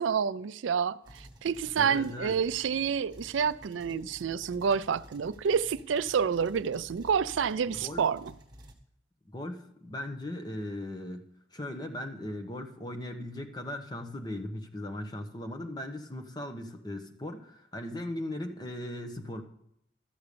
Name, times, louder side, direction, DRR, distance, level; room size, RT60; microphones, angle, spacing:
voice 1, 0.0-8.3, right 6 dB, 85° right, 0.4 m, -29 dB
sound 1, 1.0-8.7, right 1 dB, 20° right, 1.4 m, -52 dB
voice 2, 1.8-2.4 7.6-8.1 9.3-19.4, left 1 dB, 20° left, 1.0 m, -38 dB
13.0 x 6.8 x 6.8 m
head